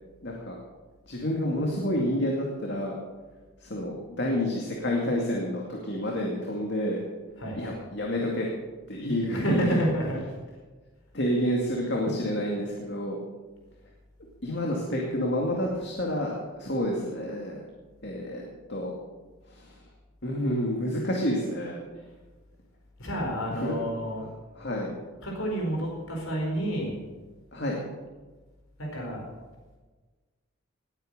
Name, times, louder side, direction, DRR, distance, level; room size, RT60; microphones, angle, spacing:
voice 1, 0.2-0.6 1.1-2.9 3.6-7.0 7.5-8.5 8.9-9.8 11.1-13.2 14.4-17.6 18.0-18.4 18.7-18.9 19.5-19.8 20.2-21.8 23.5-23.7 24.6-24.9 27.5-27.8, equal, 50° left, -1 dB, 2.3 m, -29 dB
voice 2, 9.3-10.2 22.0-22.1 23.0-24.3 25.2-27.0 28.8-29.3, right 1 dB, 75° left, -1 dB, 4.6 m, -29 dB
20.0 x 8.9 x 6.6 m, 1.3 s
head